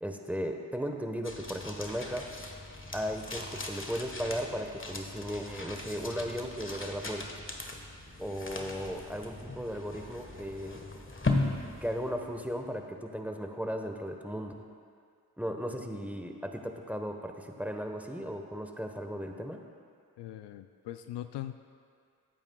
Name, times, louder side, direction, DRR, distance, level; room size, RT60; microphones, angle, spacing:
voice 1, 0.0-2.3 2.9-7.3 8.2-10.9 11.8-14.5 15.4-19.6, equal, 5° right, 3 dB, 1.2 m, -36 dB
sound 1, 1.2-12.6, left 2 dB, 25° left, 1.5 m, -38 dB
voice 2, 20.2-21.6, left 13 dB, 65° left, 10 dB, 0.6 m, -40 dB
19.0 x 8.8 x 2.3 m, 2.2 s
supercardioid pair, 40°, 45 cm